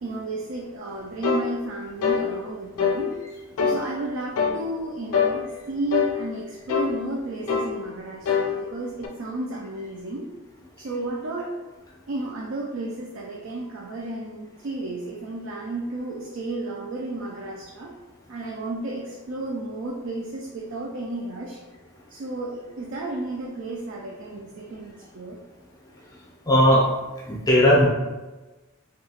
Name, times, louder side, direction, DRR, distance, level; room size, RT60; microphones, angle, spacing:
voice 1, 0.0-3.1 3.6-10.3 10.8-11.5 12.1-17.9 18.3-21.6 22.1-25.4, right 2 dB, 65° right, -2 dB, 0.4 m, -33 dB
sound 1, 1.2-1.5 2.0-2.3 2.8-3.0 3.6-3.8 4.4-4.6 5.1-5.4 5.9-6.1 6.7-6.9 7.5-7.7 8.3-8.5 9.0-9.1, left 6 dB, 85° left, 0.4 m, -23 dB
voice 2, 26.5-26.9 27.3-27.9, equal, 15° left, -4 dB, 0.5 m, -17 dB
2.7 x 2.3 x 2.8 m, 1.2 s
head